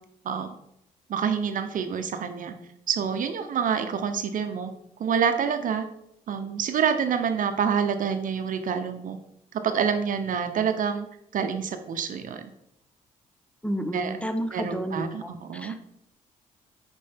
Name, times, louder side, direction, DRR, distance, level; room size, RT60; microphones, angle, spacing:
voice 1, 1.1-2.5 2.9-4.7 5.0-5.8 6.3-9.2 9.6-11.1 11.3-12.5 13.9-14.2 14.5-15.8, right 7 dB, 60° right, 8 dB, 0.8 m, -27 dB
voice 2, 13.6-15.8, equal, 10° left, 7 dB, 0.9 m, -31 dB
8.3 x 4.5 x 3.5 m, 0.78 s
supercardioid pair, 70°, 15 cm